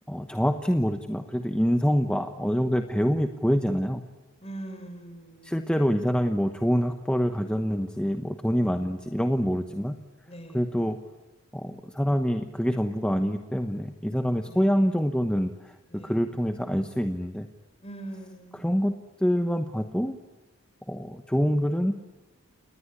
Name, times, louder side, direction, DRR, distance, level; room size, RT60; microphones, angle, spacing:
voice 1, 0.1-4.0 5.4-9.9 10.5-11.0 11.5-17.5 18.6-18.9 19.2-20.2 20.9-22.0, equal, 5° left, 6 dB, 1.0 m, -26 dB
voice 2, 4.4-5.7 10.3-10.8 14.4-14.9 15.9-16.3 17.8-18.8, right 1 dB, 30° left, 5 dB, 6.3 m, -42 dB
29.0 x 20.0 x 9.9 m, 1.2 s
head